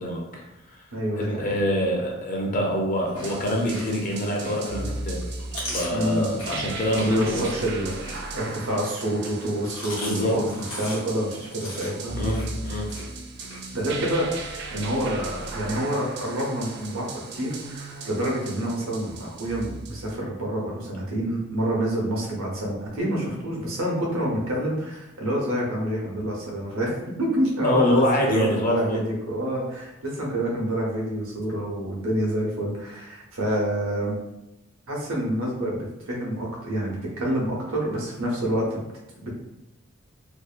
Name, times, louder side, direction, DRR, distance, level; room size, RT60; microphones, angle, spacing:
voice 1, 0.0-0.8 1.2-5.2 5.7-7.4 10.0-10.3 12.2-12.9 27.6-29.0, left 1 dB, 40° left, -1 dB, 0.5 m, -25 dB
voice 2, 0.9-1.5 5.9-6.3 7.0-12.2 13.7-17.1 17.3-34.2 34.9-38.8 39.2-39.3, right 1 dB, 90° right, -2 dB, 0.7 m, -27 dB
Chewing mastication, 3.0-4.8 5.2-8.7 9.4-13.6, left 1 dB, 80° left, 0.9 m, -38 dB
sound 1, 3.2-20.2, right 3 dB, 55° right, 0.3 m, -37 dB
2.7 x 2.1 x 2.4 m, 0.91 s
head